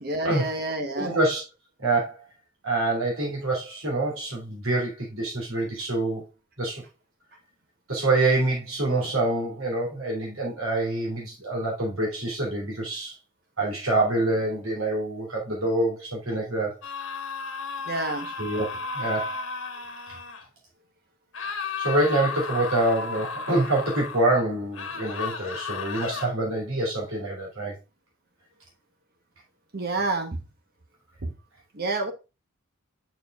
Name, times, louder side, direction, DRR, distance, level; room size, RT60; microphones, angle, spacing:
voice 1, 0.0-1.2 17.9-18.3 29.7-30.4 31.2-31.3 31.7-32.1, right 2 dB, 50° right, 1.0 m, -28 dB
voice 2, 0.9-1.4 1.8-2.2 2.6-6.2 6.6-6.8 7.9-13.1 13.6-16.8 18.4-19.4 21.8-27.8, right 2 dB, 85° right, 3.3 m, -26 dB
sound 1, 16.8-20.5 21.3-24.3 24.7-26.3, left 4 dB, 65° left, 1.3 m, -34 dB
6.8 x 6.7 x 2.4 m
head